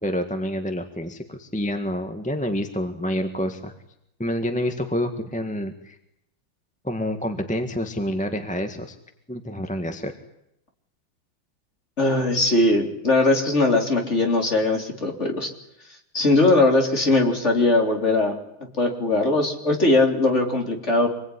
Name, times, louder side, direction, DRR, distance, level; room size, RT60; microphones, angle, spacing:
voice 1, 0.0-3.7 4.2-6.0 6.8-8.9 9.3-10.1, equal, 5° left, 6 dB, 1.6 m, -28 dB
voice 2, 12.0-15.5 16.1-18.4 18.8-21.1, left 2 dB, 35° left, 2 dB, 4.0 m, -20 dB
26.5 x 21.0 x 10.0 m, 0.81 s
omnidirectional pair, 2.2 m